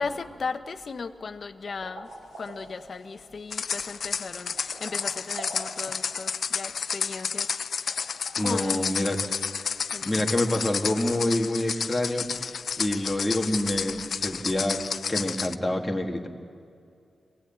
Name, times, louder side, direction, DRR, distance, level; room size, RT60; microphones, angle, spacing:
voice 1, 0.0-2.1 2.4-8.0 8.4-8.8 9.9-10.3, left 4 dB, 50° left, 9 dB, 0.9 m, -36 dB
sound 1, 1.5-11.1, right 2 dB, 90° right, 7.7 m, -47 dB
sound 2, 3.5-15.5, left 6 dB, 65° left, 0.5 m, -31 dB
voice 2, 8.4-9.2 9.6-9.7 10.0-14.8 15.1-16.3, left 1 dB, 10° left, 1 dB, 1.9 m, -27 dB
25.5 x 16.5 x 8.8 m, 2.4 s
wide cardioid pair, 145°, 0 cm